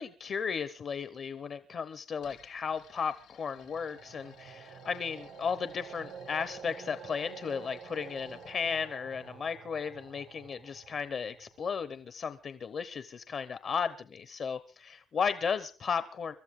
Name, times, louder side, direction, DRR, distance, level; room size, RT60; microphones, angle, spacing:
voice 1, 0.0-16.3, left 6 dB, 55° left, 0.8 m, -35 dB
sound 1, 2.2-8.8, left 9 dB, 85° left, 3.7 m, -60 dB
sound 2, 3.6-11.6, right 5 dB, 75° right, 1.8 m, -49 dB
23.5 x 13.0 x 3.7 m
cardioid pair, 90°, 0 cm